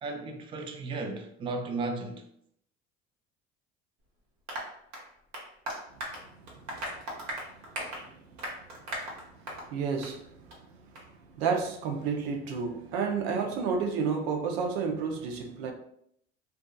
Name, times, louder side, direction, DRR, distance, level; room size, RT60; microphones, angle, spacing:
voice 1, 0.0-2.2, right 3 dB, 20° right, 0.3 m, -35 dB
Applause, 4.5-9.7 10.0-10.2 10.5-10.6 11.0-11.1, right 1 dB, 65° right, 0.9 m, -38 dB
voice 2, 6.5-7.3 7.9-8.4 9.4-10.6 11.0-11.1 11.4-15.7, right 5 dB, 90° right, 0.5 m, -32 dB
2.6 x 2.3 x 2.2 m
supercardioid pair, 80°, 31 cm